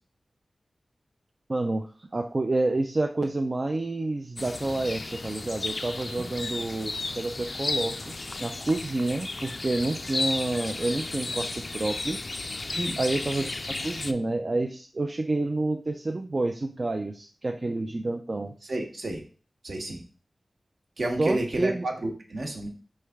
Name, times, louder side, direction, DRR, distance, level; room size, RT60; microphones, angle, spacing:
voice 1, 1.5-12.2 13.0-18.5 21.2-21.8, right 2 dB, 40° right, 4 dB, 0.4 m, -29 dB
sound 1, 4.4-14.1, left 3 dB, 45° left, 0.3 m, -34 dB
voice 2, 18.6-19.2 19.6-20.0 21.0-22.7, right 1 dB, 65° right, 2 dB, 1.0 m, -30 dB
4.6 x 3.2 x 3.4 m, 0.38 s
wide cardioid pair, 95°, 0 cm